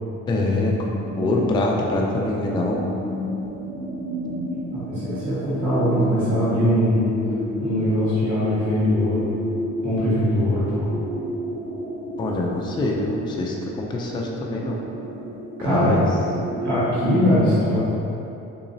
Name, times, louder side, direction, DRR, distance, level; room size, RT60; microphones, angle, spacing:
voice 1, 0.3-0.7 1.2-2.8 12.2-14.8 15.6-16.0, left 2 dB, 15° left, -1 dB, 0.3 m, -24 dB
sound 1, 0.5-17.2, equal, 50° right, 0.7 m, -31 dB
voice 2, 4.9-7.1 7.6-9.3 9.8-10.9 15.6-16.1 16.6-17.8, equal, 65° right, -11 dB, 1.4 m, -21 dB
3.8 x 3.0 x 2.6 m, 2.9 s
cardioid pair, 95°, 31 cm